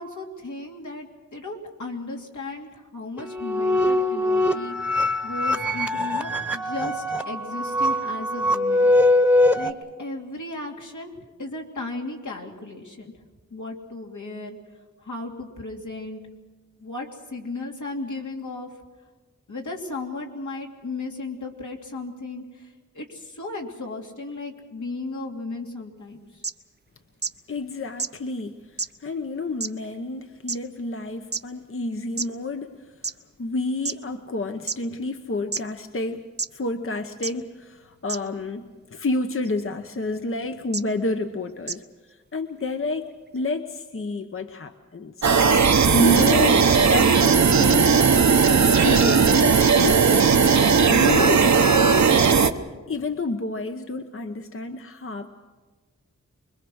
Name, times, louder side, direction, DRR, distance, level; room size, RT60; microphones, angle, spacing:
voice 1, 0.0-4.7 5.2-8.9 9.5-13.1 13.5-14.6 15.0-16.2 16.8-18.7 19.5-26.4, left 2 dB, 80° left, 0 dB, 2.9 m, -35 dB
sound 1, 3.2-9.7, left 1 dB, 5° right, 1.1 m, -22 dB
sound 2, 26.4-26.5 27.2-27.3 28.0-28.1 28.8-28.9 29.6-29.7 30.5-30.6 31.3-31.4 32.2-32.3 33.0-33.1 33.9-34.0 34.7-34.8 35.5-35.6 36.4-36.5 37.2-37.3 38.1-38.2 39.5-39.6 40.7-40.8 41.7-41.8, right 4 dB, 35° right, 0.6 m, -28 dB
voice 2, 27.5-32.9 33.4-36.3 36.5-41.8 42.3-45.3 45.9-48.0 48.5-50.1 50.9-51.8 52.9-55.3, left 2 dB, 45° left, 7 dB, 0.9 m, -29 dB
sound 3, 45.2-52.5, right 5 dB, 70° right, 0.9 m, -17 dB
25.0 x 21.5 x 6.3 m, 1.3 s
wide cardioid pair, 100°, 30 cm